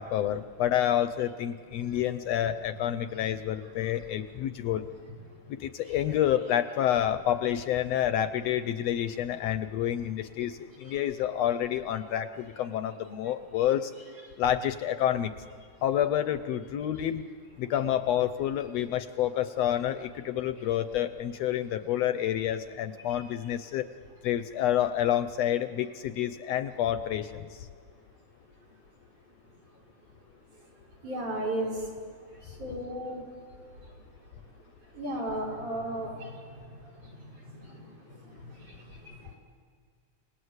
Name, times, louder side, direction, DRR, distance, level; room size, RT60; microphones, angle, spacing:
voice 1, 0.0-4.8 5.5-13.9 14.4-15.3 15.8-17.2 17.6-23.9 24.2-27.7, left 11 dB, 70° left, 11 dB, 1.7 m, -28 dB
voice 2, 31.0-31.7 32.6-33.2 35.0-36.3, right 1 dB, 80° right, 0 dB, 7.1 m, -33 dB
29.5 x 19.5 x 8.1 m, 2.2 s
omnidirectional pair, 3.4 m